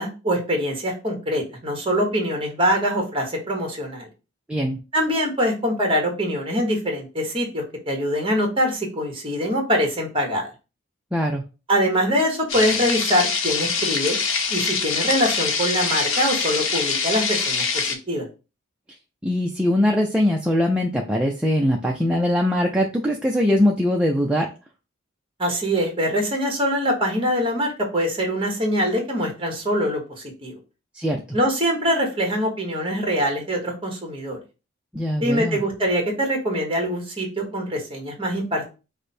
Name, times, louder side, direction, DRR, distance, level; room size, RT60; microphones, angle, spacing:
voice 1, 0.0-4.1 4.9-10.5 11.7-14.2 14.5-18.2 25.4-30.0 30.4-30.5 31.3-34.4 35.2-38.6, equal, 25° right, 2 dB, 1.2 m, -23 dB
voice 2, 11.1-11.4 19.2-24.5 30.9-31.2 34.9-35.6, left 1 dB, 5° right, 0 dB, 0.4 m, -21 dB
sound 1, 12.5-18.0, left 5 dB, 85° left, 0.9 m, -24 dB
5.0 x 2.1 x 4.2 m, 0.31 s
head